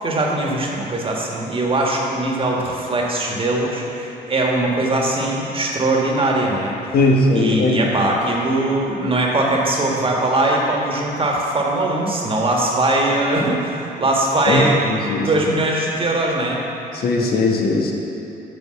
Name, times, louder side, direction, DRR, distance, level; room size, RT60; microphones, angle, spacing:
voice 1, 0.0-6.8 7.3-14.8 15.2-16.6, right 2 dB, 30° right, -2 dB, 1.6 m, -20 dB
voice 2, 6.9-8.0 14.5-15.5 16.9-17.9, left 2 dB, 60° left, 0 dB, 1.2 m, -19 dB
7.8 x 4.9 x 7.0 m, 2.9 s
cardioid pair, 85°, 18 cm